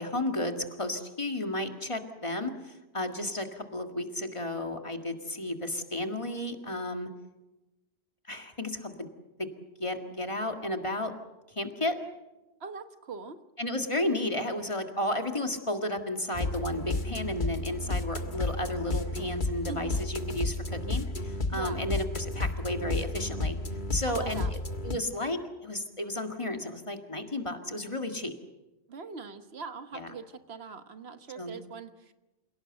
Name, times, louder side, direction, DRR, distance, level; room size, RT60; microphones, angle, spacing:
voice 1, 0.0-7.1 8.3-9.1 9.4-9.5 9.8-11.1 11.5-12.0 13.6-23.6 23.9-28.3 29.9-30.1 31.4-31.6, left 1 dB, 30° left, 5 dB, 2.0 m, -33 dB
voice 2, 12.6-13.4 19.7-20.0 21.5-21.8 24.1-24.5 28.9-32.1, right 5 dB, 75° right, 10 dB, 1.4 m, -42 dB
sound 1, 16.3-24.9, left 2 dB, 50° left, 1.7 m, -32 dB
27.5 x 17.5 x 8.0 m, 1.1 s
omnidirectional pair, 1.1 m